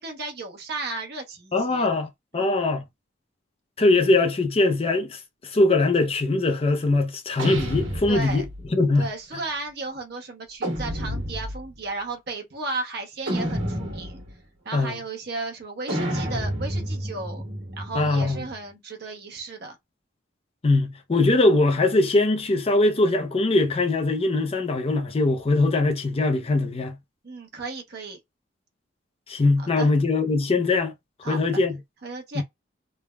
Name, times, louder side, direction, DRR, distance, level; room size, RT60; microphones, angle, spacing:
voice 1, 0.0-1.9 2.3-2.6 8.1-8.4 9.0-14.2 14.6-17.5 17.8-19.8 27.2-28.2 29.8-29.9 31.2-31.4 32.0-32.4, right 3 dB, 55° right, 0.8 m, -34 dB
voice 2, 1.5-2.8 3.8-8.4 8.7-9.1 14.7-15.0 17.9-18.4 20.6-27.0 29.3-30.9 31.2-31.8 32.3-32.4, left 2 dB, 30° left, 0.5 m, -21 dB
sound 1, 7.4-8.7 10.6-11.7 13.3-14.3 15.9-18.6, equal, 80° right, 1.3 m, -30 dB
3.3 x 2.1 x 2.2 m
head